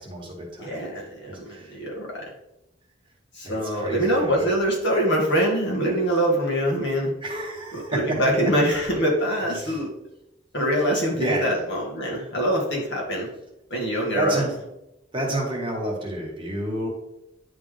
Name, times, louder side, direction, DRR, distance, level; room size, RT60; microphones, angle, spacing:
voice 1, 0.0-0.7 1.3-1.8 3.4-4.5 7.2-8.2 8.6-8.8 9.5-9.8 11.2-11.7 14.1-14.6 15.1-16.9, right 1 dB, 25° right, -2 dB, 1.6 m, -30 dB
voice 2, 0.6-2.2 3.4-7.1 7.7-9.9 10.5-13.3 13.7-14.4, equal, 70° left, -3 dB, 2.0 m, -24 dB
10.0 x 3.7 x 3.3 m, 0.91 s
head